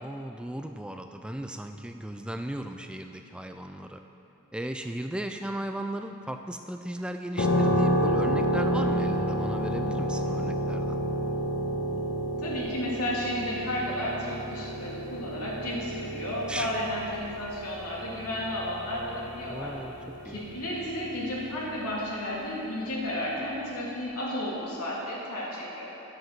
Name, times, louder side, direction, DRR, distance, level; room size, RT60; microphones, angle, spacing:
voice 1, 0.0-4.0 4.5-11.0 16.5-16.7 19.5-19.9 20.3-20.4, right 1 dB, 5° right, 6 dB, 0.3 m, -36 dB
sound 1, 7.4-22.0, equal, 60° left, 1.1 m, -30 dB
voice 2, 12.4-19.7 20.2-25.9, left 1 dB, 85° left, -5 dB, 2.8 m, -33 dB
10.5 x 7.7 x 6.0 m, 2.9 s
head